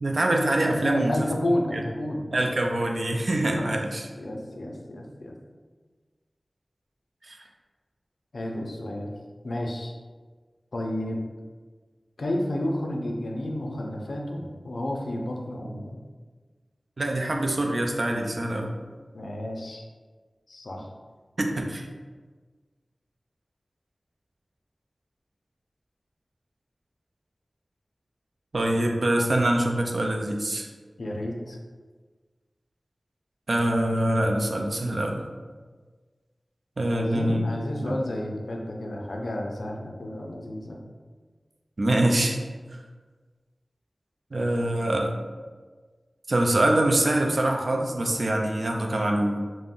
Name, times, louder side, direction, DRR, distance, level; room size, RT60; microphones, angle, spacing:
voice 1, 0.0-1.1 1.7-1.8 2.3-4.1 7.2-7.4 17.0-18.7 21.4-21.9 28.5-30.7 33.5-35.2 36.8-37.5 37.8-37.9 41.8-42.4 44.3-45.1 46.3-49.4, right 1 dB, 70° right, 2 dB, 0.3 m, -24 dB
voice 2, 0.8-2.3 3.5-3.7 4.2-5.4 8.3-9.1 9.4-9.9 10.7-11.3 12.2-16.0 19.1-19.8 20.5-20.9 31.0-31.6 36.9-40.8, left 1 dB, 90° left, 1 dB, 0.4 m, -31 dB
2.4 x 2.0 x 3.5 m, 1.4 s
wide cardioid pair, 70°, 0 cm